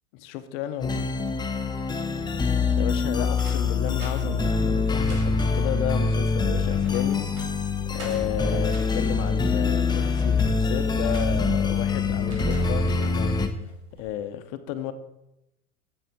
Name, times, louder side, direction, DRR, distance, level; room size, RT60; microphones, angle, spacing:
voice 1, 0.1-1.1 2.7-7.2 7.9-13.4 14.0-14.9, left 11 dB, 55° left, 0.9 m, -33 dB
sound 1, 0.8-13.5, left 4 dB, 10° left, 0.6 m, -24 dB
sound 2, 3.3-5.8 6.5-7.5 7.9-9.1 9.6-11.8 12.1-13.2 13.7-14.1, right 3 dB, 80° right, 2.3 m, -43 dB
7.7 x 7.2 x 3.7 m
hypercardioid pair, 90°, 43 cm